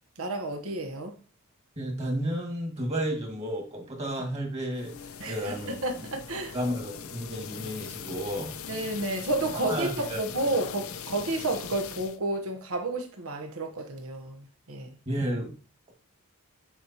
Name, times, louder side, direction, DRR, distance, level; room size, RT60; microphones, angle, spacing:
voice 1, 0.2-1.2 5.2-6.5 8.7-14.9, right 2 dB, 85° right, 1.0 m, -31 dB
voice 2, 1.8-5.8 6.5-8.6 9.7-10.2 15.1-15.5, equal, 30° right, 1.8 m, -32 dB
sound 1, 4.7-12.2, left 7 dB, 80° left, 0.5 m, -40 dB
8.2 x 4.6 x 2.8 m
head